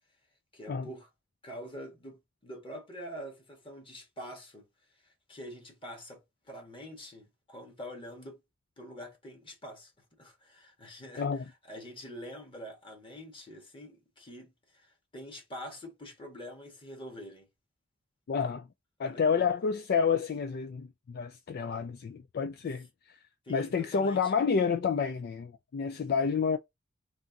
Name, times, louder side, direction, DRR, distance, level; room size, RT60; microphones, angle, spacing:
voice 1, 0.5-1.1 1.4-4.7 5.0-8.4 8.8-17.5 19.0-19.5 23.4-24.3, equal, 25° left, 1.5 m, -46 dB
voice 2, 18.3-18.7 19.0-23.2 23.5-26.6, left 6 dB, 50° left, 0.3 m, -29 dB
3.5 x 2.6 x 3.8 m
head